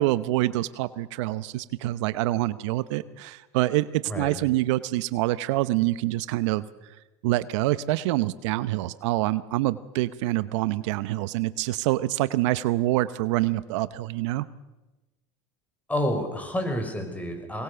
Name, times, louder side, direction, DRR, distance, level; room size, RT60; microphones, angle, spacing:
voice 1, 0.0-6.6 7.2-14.5, right 17 dB, 75° right, 15 dB, 0.8 m, -26 dB
voice 2, 15.9-17.6, left 1 dB, 10° left, 5 dB, 5.8 m, -29 dB
23.5 x 19.5 x 6.9 m, 1.1 s
hypercardioid pair, 95°, 16 cm